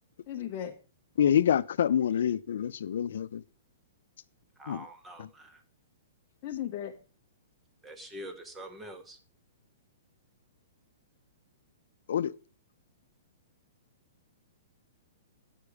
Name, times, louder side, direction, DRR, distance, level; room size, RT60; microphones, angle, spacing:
voice 1, 0.3-0.7 6.4-6.9, left 10 dB, 30° left, 0.8 m, -35 dB
voice 2, 1.2-3.4 4.7-4.8 5.2-5.3 12.1-12.3, left 9 dB, 65° left, 0.5 m, -26 dB
voice 3, 4.6-5.6 7.8-9.2, right 1 dB, 10° right, 1.0 m, -45 dB
9.4 x 6.8 x 4.8 m
hypercardioid pair, 165°, 0 cm